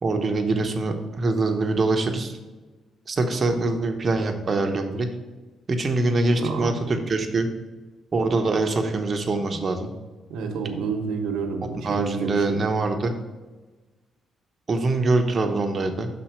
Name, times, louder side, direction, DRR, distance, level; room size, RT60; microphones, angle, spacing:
voice 1, 0.0-2.3 3.1-5.1 5.7-7.5 8.1-9.9 11.8-13.1 14.7-16.1, right 3 dB, 40° right, 4 dB, 1.0 m, -24 dB
voice 2, 6.4-6.7 10.3-12.6, right 5 dB, 85° right, 3 dB, 1.1 m, -29 dB
6.0 x 4.3 x 5.9 m, 1.2 s
cardioid pair, 90°, 0 cm